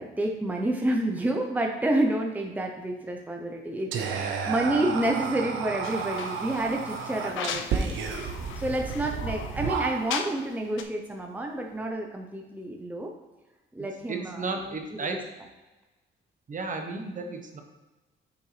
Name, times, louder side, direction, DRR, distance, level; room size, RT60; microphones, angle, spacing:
voice 1, 0.0-8.3 8.6-13.1 13.7-14.8 15.1-15.2, right 1 dB, 10° right, 2 dB, 0.7 m, -29 dB
Whispering, 3.9-10.4, right 6 dB, 80° right, 0.7 m, -32 dB
voice 2, 4.1-4.5 14.1-15.3 16.5-17.6, right 3 dB, 40° right, 3 dB, 1.0 m, -34 dB
sound 1, 5.8-10.5 10.8-10.9, left 8 dB, 75° left, 0.5 m, -38 dB
6.5 x 5.4 x 3.3 m, 1.1 s
cardioid pair, 90°, 20 cm